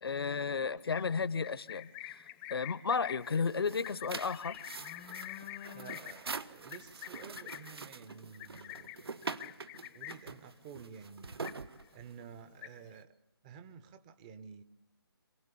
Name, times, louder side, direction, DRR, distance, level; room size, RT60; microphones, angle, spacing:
voice 1, 0.0-2.2 2.5-4.6, left 5 dB, 70° left, 18 dB, 1.0 m, -33 dB
Livestock farm animals working animals, 0.8-10.4 10.7-11.0 11.3-12.0 12.3-13.0, left 16 dB, 10° left, 0.8 m, -47 dB
sound 1, 3.2-12.4, right 4 dB, 75° right, 1.3 m, -44 dB
voice 2, 5.7-9.1 9.9-11.4 11.9-13.1 13.4-14.6, right 6 dB, 20° right, 12 dB, 0.9 m, -51 dB
26.5 x 18.0 x 8.5 m, 0.83 s
hypercardioid pair, 160°, 13 cm